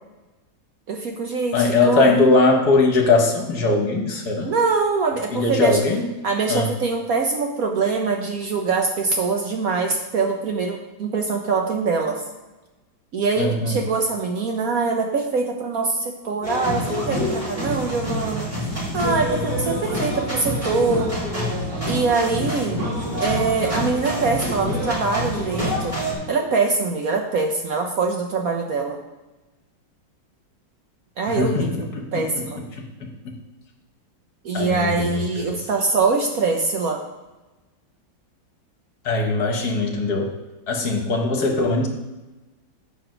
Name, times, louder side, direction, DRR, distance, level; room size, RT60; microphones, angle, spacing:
voice 1, 0.9-2.1 4.4-5.8 6.2-12.2 13.1-18.5 18.9-21.1 21.9-22.8 23.2-26.0 26.3-29.0 31.2-31.8 32.1-32.6 34.4-37.0, right 4 dB, 60° right, 2 dB, 1.0 m, -23 dB
voice 2, 1.5-4.5 5.3-6.1 6.5-6.7 13.4-13.8 31.3-32.4 32.7-33.4 34.5-35.6 39.0-40.3 40.7-41.9, left 3 dB, 60° left, 2 dB, 1.6 m, -21 dB
sound 1, 16.4-26.1, equal, 25° right, 3.0 m, -26 dB
7.8 x 4.9 x 6.0 m, 1.1 s
omnidirectional pair, 2.0 m